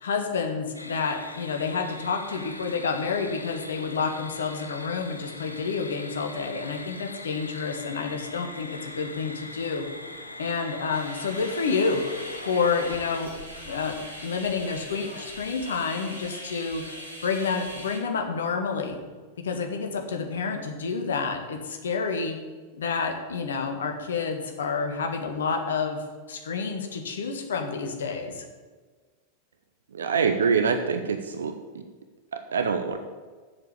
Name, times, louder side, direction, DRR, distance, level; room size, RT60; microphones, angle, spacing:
voice 1, 0.0-9.8 10.4-12.0 12.4-13.3 13.6-16.8 17.2-19.0 19.4-22.4 22.8-26.0 26.3-28.4, left 5 dB, 65° left, 4 dB, 1.6 m, -29 dB
sound 1, 0.7-13.2, left 2 dB, 85° left, 0.8 m, -41 dB
sound 2, 10.9-18.0, equal, 90° right, 2.7 m, -41 dB
voice 2, 29.9-31.8 32.3-33.0, right 5 dB, 70° right, 7 dB, 0.8 m, -25 dB
7.5 x 7.5 x 8.5 m, 1.4 s
figure-of-eight pair, 90°, 0 cm